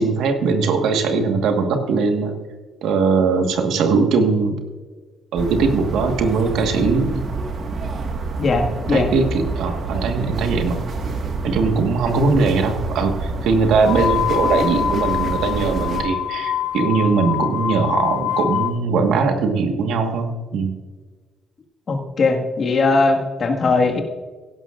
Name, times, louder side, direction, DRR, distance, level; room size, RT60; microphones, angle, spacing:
voice 1, 0.0-2.3 2.8-4.6 5.3-7.2 8.9-10.8 11.4-20.7, right 4 dB, 85° right, 5 dB, 1.4 m, -20 dB
sound 1, 5.4-16.0, right 3 dB, 55° right, 1.6 m, -28 dB
voice 2, 8.4-9.1 21.9-24.0, left 3 dB, 45° left, 4 dB, 1.6 m, -19 dB
sound 2, 13.8-18.8, left 9 dB, 90° left, 0.8 m, -24 dB
16.0 x 11.5 x 2.5 m, 1.3 s
cardioid pair, 90°, 0 cm